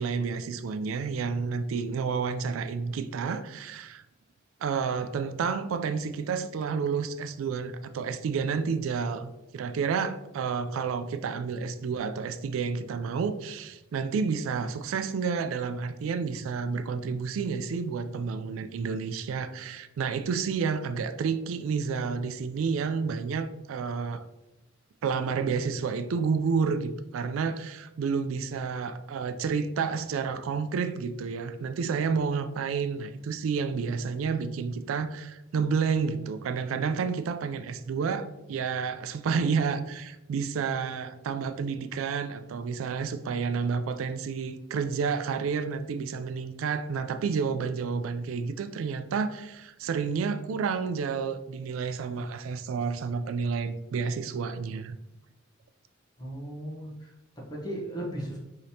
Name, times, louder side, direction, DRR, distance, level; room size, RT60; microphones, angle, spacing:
voice 1, 0.0-4.0 4.6-24.2 25.0-55.0, right 5 dB, 90° right, 0.3 m, -30 dB
voice 2, 56.2-58.4, right 1 dB, 20° left, 0.8 m, -37 dB
5.0 x 2.8 x 2.7 m
head